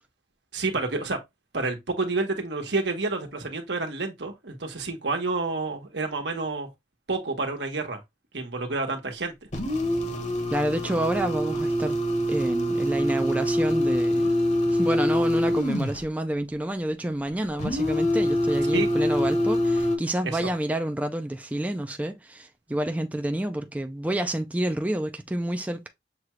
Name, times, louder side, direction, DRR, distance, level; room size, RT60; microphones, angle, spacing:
voice 1, 0.5-1.2 1.5-6.7 7.1-8.0 8.3-9.3 18.7-18.9 20.2-20.5, right 3 dB, 80° right, 1.2 m, -29 dB
sound 1, 9.5-16.1 17.6-20.0, equal, 40° left, 1.0 m, -25 dB
voice 2, 10.5-12.0 12.3-14.3 14.7-25.9, right 1 dB, 10° right, 0.4 m, -28 dB
6.6 x 2.3 x 3.0 m
head